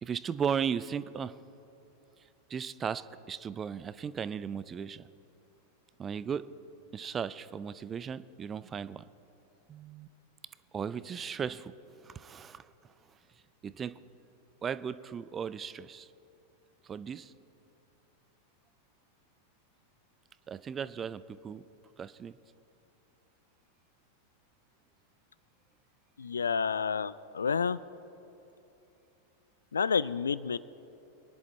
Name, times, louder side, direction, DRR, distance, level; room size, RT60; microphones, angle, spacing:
voice 1, 0.0-1.3 2.5-5.0 6.0-6.5 6.9-9.0 9.7-10.1 10.7-11.7 12.0-12.7 13.6-13.9 14.6-16.1 16.9-17.3 20.5-21.6 22.0-22.4, right 7 dB, 20° right, 16 dB, 0.4 m, -36 dB
voice 2, 26.2-27.8 29.7-30.6, left 6 dB, 70° left, 18 dB, 0.3 m, -29 dB
24.5 x 11.0 x 3.4 m, 2.9 s
figure-of-eight pair, 90°, 0 cm